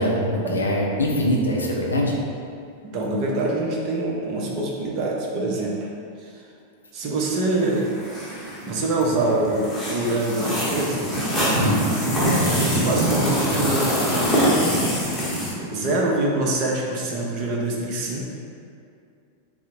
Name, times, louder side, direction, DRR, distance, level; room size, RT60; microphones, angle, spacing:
voice 1, 0.0-2.2 11.6-11.8, equal, 75° left, -1 dB, 0.5 m, -22 dB
voice 2, 2.9-5.9 6.2-6.4 6.9-7.9 8.7-11.1 11.4-11.6 12.2-14.4 15.6-18.2, right 2 dB, 40° right, -1 dB, 0.6 m, -25 dB
sound 1, 7.6-15.5, equal, 5° left, 1.0 m, -24 dB
3.7 x 2.1 x 4.3 m, 2.4 s
figure-of-eight pair, 90°, 0 cm